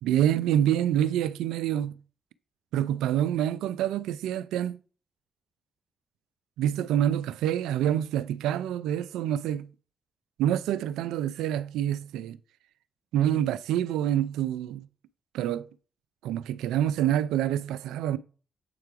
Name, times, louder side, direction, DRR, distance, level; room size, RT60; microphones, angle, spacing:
voice 1, 0.0-1.9 2.7-4.8 6.6-9.7 10.4-12.4 13.1-14.9 15.3-15.7 16.2-18.2, right 11 dB, 85° right, 0.4 m, -27 dB
7.7 x 4.5 x 4.7 m
hypercardioid pair, 45°, 0 cm